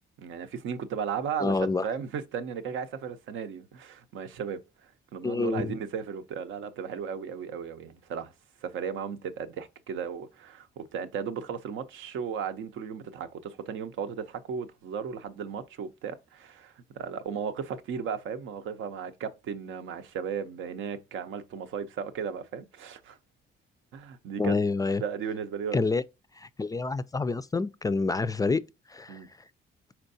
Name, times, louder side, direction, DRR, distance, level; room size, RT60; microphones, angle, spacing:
voice 1, 0.2-8.3 8.6-23.2 23.9-24.6 25.0-25.9 29.1-29.3, right 7 dB, 80° right, 0.7 m, -35 dB
voice 2, 1.4-1.9 5.2-5.7 24.4-25.0 25.7-26.0 26.4-28.6 28.9-29.2, left 3 dB, 20° left, 0.3 m, -27 dB
4.4 x 4.4 x 2.6 m
cardioid pair, 90°, 20 cm